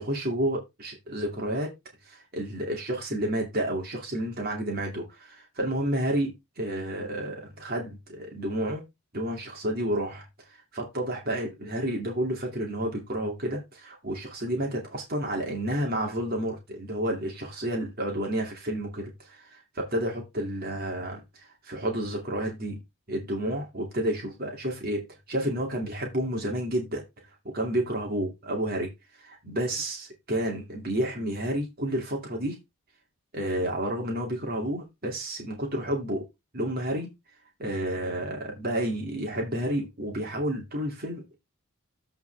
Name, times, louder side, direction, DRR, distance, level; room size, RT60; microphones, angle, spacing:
voice 1, 0.0-1.7 2.0-8.8 9.1-10.2 10.7-22.8 23.1-27.0 27.4-28.9 29.2-32.6 33.3-36.3 36.5-37.1 37.6-41.4, right 1 dB, 45° right, 2.4 m, -30 dB
14.0 x 4.6 x 3.4 m
head